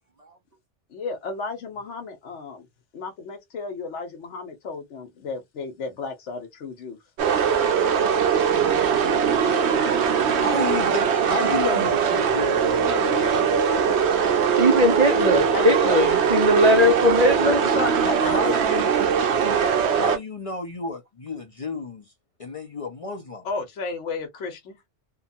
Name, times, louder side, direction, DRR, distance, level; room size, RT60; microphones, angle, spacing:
voice 1, 0.9-2.7 2.9-7.0 7.3-7.6 15.5-16.0 17.4-18.4 23.4-24.8, left 4 dB, 90° left, 1.1 m, -33 dB
sound 1, 7.2-20.2, right 7 dB, 75° right, 0.9 m, -21 dB
voice 2, 10.4-13.7 18.0-18.9 19.9-22.0 22.4-23.5, left 3 dB, 45° left, 0.4 m, -32 dB
voice 3, 14.6-17.6, left 1 dB, 55° right, 0.4 m, -19 dB
2.8 x 2.2 x 2.5 m
omnidirectional pair, 1.2 m